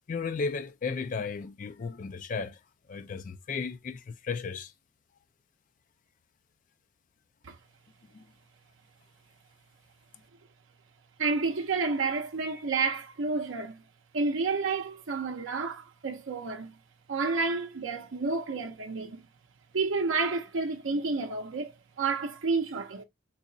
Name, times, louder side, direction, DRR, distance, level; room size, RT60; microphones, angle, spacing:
voice 1, 0.1-2.6 2.9-4.7 8.1-8.2, left 5 dB, 40° left, 0.3 m, -34 dB
voice 2, 11.2-13.8 14.1-16.8 17.1-19.2 19.7-23.0, right 4 dB, 65° right, 0.5 m, -30 dB
4.0 x 2.8 x 2.6 m
head